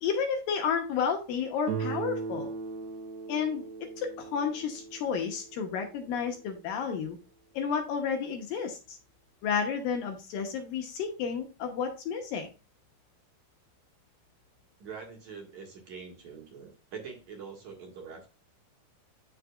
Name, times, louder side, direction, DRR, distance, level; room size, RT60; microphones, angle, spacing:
voice 1, 0.0-2.5 3.3-3.6 4.0-7.2 7.5-9.0 9.4-12.5, left 6 dB, 70° left, 4 dB, 2.4 m, -31 dB
Guitar, 1.7-6.5, right 5 dB, 80° right, 2.6 m, -38 dB
voice 2, 14.8-18.3, right 6 dB, 55° right, 1 dB, 2.6 m, -44 dB
9.8 x 6.5 x 2.4 m, 0.31 s
omnidirectional pair, 4.6 m